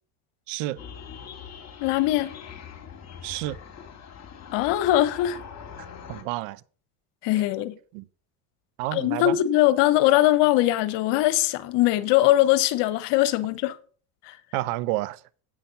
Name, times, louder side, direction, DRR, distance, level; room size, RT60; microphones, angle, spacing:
voice 1, 0.5-0.8 3.2-3.6 6.1-6.6 7.9-8.1 8.8-9.4 14.5-15.2, right 17 dB, 80° right, 0.7 m, -29 dB
sound 1, 0.8-6.2, left 7 dB, 35° left, 3.8 m, -42 dB
voice 2, 1.8-2.3 4.5-5.4 7.2-7.7 8.9-13.8 14.2-14.4, left 15 dB, 70° left, 1.2 m, -21 dB
8.7 x 5.8 x 6.9 m
supercardioid pair, 85°, 43 cm